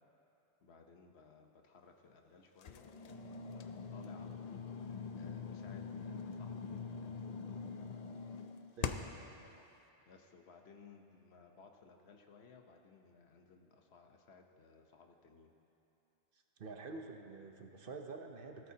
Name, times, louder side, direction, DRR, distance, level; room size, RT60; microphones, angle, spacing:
voice 1, 0.6-7.4 8.9-9.7 10.1-15.5, left 4 dB, 75° left, 3 dB, 1.1 m, -60 dB
sound 1, 2.6-9.3, left 6 dB, 50° left, 0.5 m, -43 dB
voice 2, 8.8-9.1 16.6-18.7, right 4 dB, 60° right, 4 dB, 1.0 m, -47 dB
17.0 x 13.0 x 2.8 m, 2.9 s
omnidirectional pair, 1.1 m